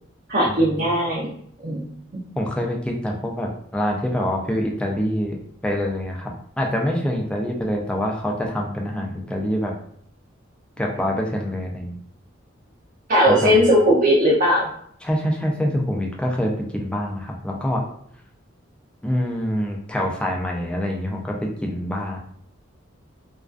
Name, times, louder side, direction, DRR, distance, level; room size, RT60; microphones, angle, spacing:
voice 1, 0.3-1.3 1.6-1.8 13.1-14.7, equal, 45° right, -7 dB, 0.5 m, -18 dB
voice 2, 2.4-5.4 5.6-6.3 6.6-9.7 10.8-12.0 13.3-13.6 15.0-17.8 19.0-22.2, equal, 5° left, 0 dB, 0.4 m, -25 dB
2.3 x 2.3 x 2.4 m, 0.64 s
head